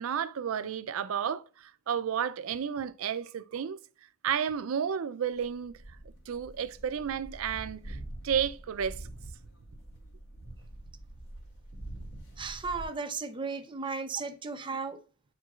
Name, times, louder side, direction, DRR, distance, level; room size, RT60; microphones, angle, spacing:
voice 1, 0.0-3.8 4.2-5.7 6.3-8.0 8.2-9.1, right 8 dB, 65° right, 0.4 m, -32 dB
sound 1, 5.3-12.8, right 1 dB, 90° left, 2.4 m, -45 dB
voice 2, 12.4-15.0, right 4 dB, 20° right, 0.6 m, -35 dB
9.3 x 4.5 x 2.3 m
head